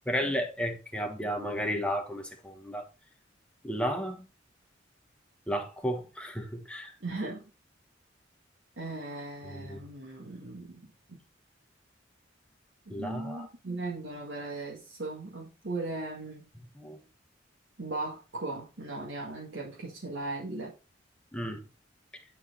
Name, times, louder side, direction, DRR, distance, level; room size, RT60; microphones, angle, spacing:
voice 1, 0.1-2.8 3.6-4.3 5.5-6.9 9.4-9.8 12.9-13.5 16.6-17.0 21.3-21.7, equal, 5° left, 1.2 m, -33 dB
voice 2, 7.0-7.4 8.8-11.2 12.8-16.5 17.8-20.7, right 2 dB, 80° right, 1.8 m, -38 dB
8.8 x 4.5 x 4.2 m
head